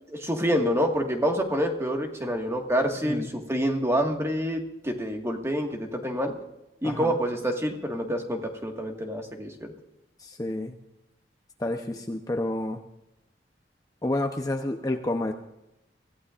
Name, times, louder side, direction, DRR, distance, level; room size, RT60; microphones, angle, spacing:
voice 1, 0.1-6.3 6.8-9.7, equal, 15° right, 2 dB, 1.8 m, -27 dB
voice 2, 6.8-7.2 10.2-10.8 11.6-12.8 14.0-15.3, left 1 dB, 20° left, 3 dB, 0.8 m, -29 dB
24.5 x 15.5 x 2.5 m, 0.90 s
head